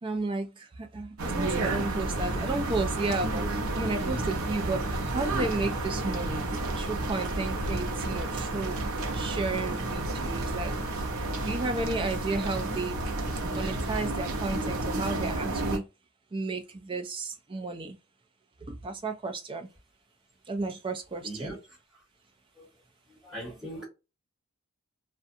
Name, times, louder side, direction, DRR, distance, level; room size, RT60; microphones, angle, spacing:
voice 1, 0.0-4.8 5.1-6.5 6.8-8.8 9.1-10.7 11.4-13.0 13.4-15.8 16.3-18.0 18.6-19.7 20.5-21.6, right 3 dB, 25° right, 0.4 m, -33 dB
sound 1, 1.2-15.8, right 2 dB, 75° right, 0.7 m, -31 dB
voice 2, 21.2-21.5 22.6-22.7 23.2-23.8, right 1 dB, ahead, 1.4 m, -39 dB
2.4 x 2.2 x 2.6 m
head